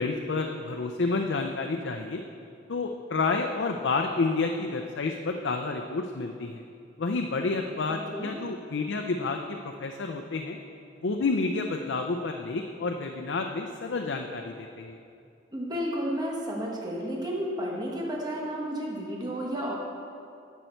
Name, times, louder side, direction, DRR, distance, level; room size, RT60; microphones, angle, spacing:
voice 1, 0.0-2.2 2.7-6.6 7.0-10.6 11.0-15.0, left 3 dB, 75° left, 4 dB, 0.5 m, -29 dB
voice 2, 7.9-8.4 15.5-19.8, equal, 20° right, -2 dB, 1.3 m, -32 dB
10.5 x 8.1 x 4.5 m, 2.5 s
head